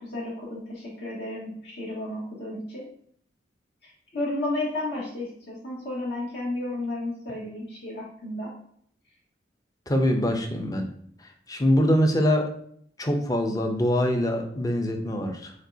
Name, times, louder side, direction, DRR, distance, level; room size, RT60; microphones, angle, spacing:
voice 1, 0.0-2.9 3.8-8.5, left 2 dB, 70° left, -5 dB, 2.0 m, -33 dB
voice 2, 9.9-10.9 11.5-12.5 13.0-15.5, equal, 20° left, 4 dB, 0.5 m, -23 dB
5.1 x 3.7 x 2.6 m, 0.64 s
head